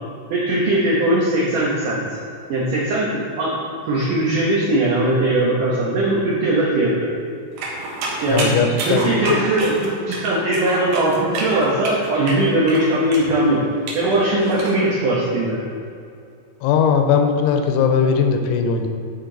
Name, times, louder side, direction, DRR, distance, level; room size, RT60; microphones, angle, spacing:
voice 1, 0.3-2.0 2.5-3.6 3.9-7.1 8.2-13.6 14.0-15.6, right 1 dB, 85° right, -5 dB, 1.8 m, -20 dB
sound 1, 7.6-14.7, right 2 dB, 65° right, 2.8 m, -29 dB
voice 2, 8.3-9.4 16.6-18.9, left 6 dB, 85° left, 5 dB, 3.0 m, -19 dB
11.0 x 5.9 x 3.9 m, 2.4 s
omnidirectional pair, 5.6 m